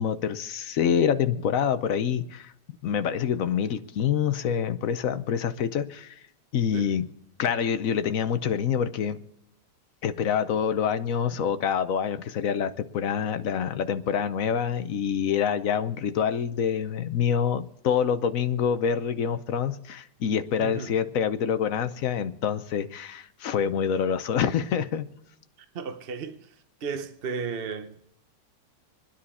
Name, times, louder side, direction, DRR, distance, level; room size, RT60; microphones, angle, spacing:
voice 1, 0.0-2.5 2.8-6.1 6.5-7.1 7.4-9.2 10.0-25.1, left 8 dB, 60° left, 1.0 m, -26 dB
voice 2, 20.6-20.9 25.7-26.5 26.8-28.1, right 5 dB, 45° right, 0.8 m, -34 dB
27.5 x 10.0 x 4.2 m
omnidirectional pair, 1.9 m